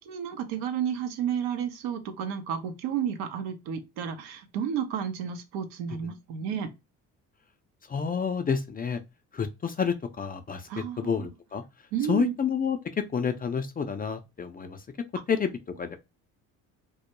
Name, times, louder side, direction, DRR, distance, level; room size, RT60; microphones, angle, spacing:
voice 1, 0.1-6.7 10.7-11.3 11.9-12.3, right 8 dB, 75° right, 0.7 m, -31 dB
voice 2, 7.9-9.0 9.3-11.6 12.1-12.8 13.1-14.8 15.3-15.5 15.8-16.0, left 6 dB, 25° left, 0.4 m, -29 dB
2.3 x 2.1 x 2.9 m
hypercardioid pair, 60°, 39 cm